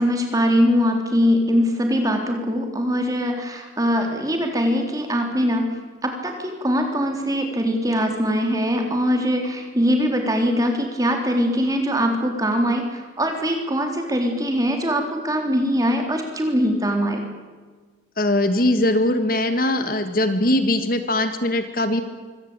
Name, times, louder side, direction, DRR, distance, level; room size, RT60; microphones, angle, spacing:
voice 1, 0.0-5.7 6.0-17.2, equal, 20° right, 3 dB, 3.8 m, -22 dB
voice 2, 18.2-22.0, left 1 dB, 50° left, 9 dB, 1.7 m, -21 dB
24.5 x 17.5 x 8.8 m, 1.4 s
head